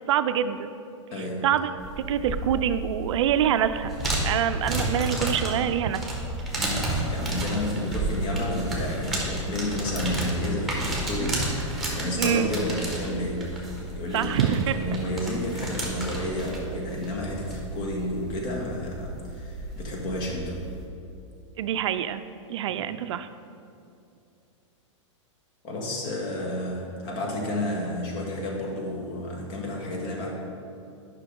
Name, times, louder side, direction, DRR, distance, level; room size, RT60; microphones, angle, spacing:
voice 1, 0.1-0.7 1.4-1.7 2.1-3.9 4.2-6.0 12.2-12.5 14.1-14.8 21.6-22.2 22.5-23.3, right 10 dB, 65° right, 11 dB, 0.4 m, -25 dB
voice 2, 1.1-1.5 6.5-20.6 25.6-30.3, left 1 dB, 45° left, -1 dB, 1.7 m, -31 dB
sound 1, 1.8-20.8, right 1 dB, ahead, 1.7 m, -32 dB
9.0 x 5.9 x 3.8 m, 2.6 s
hypercardioid pair, 115°, 16 cm